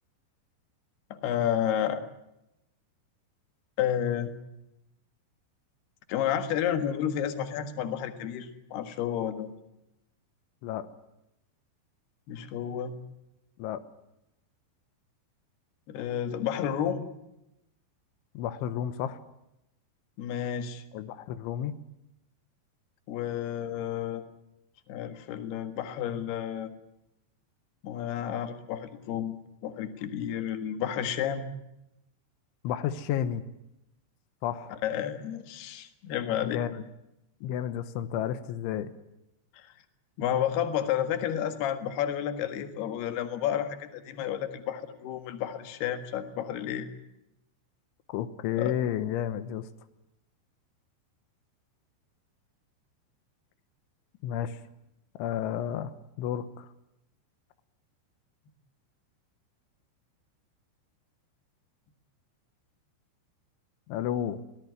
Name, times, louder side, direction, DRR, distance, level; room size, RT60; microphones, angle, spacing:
voice 1, 1.2-2.0 3.8-4.3 6.1-9.5 12.3-13.0 15.9-17.1 20.2-20.8 23.1-24.2 24.9-26.7 27.8-29.3 29.6-31.5 34.8-36.6 39.5-39.7 40.2-46.9 48.6-48.7, left 9 dB, 65° left, 8 dB, 3.5 m, -31 dB
voice 2, 18.4-19.2 20.9-21.8 32.7-33.4 34.4-34.8 36.4-36.8 37.4-38.9 48.1-49.7 54.2-54.6 55.2-56.7 63.9-64.4, left 10 dB, 90° left, 11 dB, 3.5 m, -31 dB
23.5 x 18.0 x 9.6 m, 0.89 s
omnidirectional pair, 5.3 m